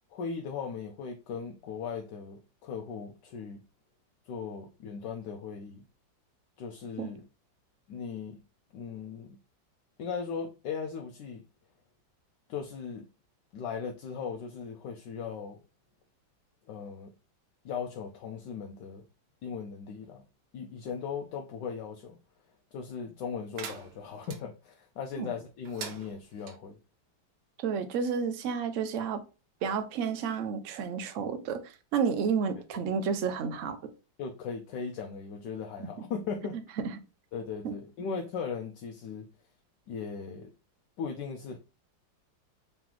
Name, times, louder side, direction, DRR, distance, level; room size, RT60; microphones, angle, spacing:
voice 1, 0.1-3.6 4.3-5.8 6.6-7.2 7.9-8.4 8.7-9.4 10.0-11.4 12.5-13.1 13.5-15.6 16.7-17.1 17.6-19.0 19.4-20.2 20.5-22.2 22.7-26.8 34.2-36.6 37.3-39.3 39.9-40.5 41.0-41.6, left 6 dB, 75° left, 1.1 m, -38 dB
sound 1, 23.6-24.4 25.6-26.6, right 7 dB, 90° right, 1.5 m, -43 dB
voice 2, 27.6-29.2 29.6-33.8 35.8-35.9 37.6-37.7, right 6 dB, 70° right, 0.7 m, -31 dB
3.9 x 3.0 x 3.7 m
omnidirectional pair, 2.0 m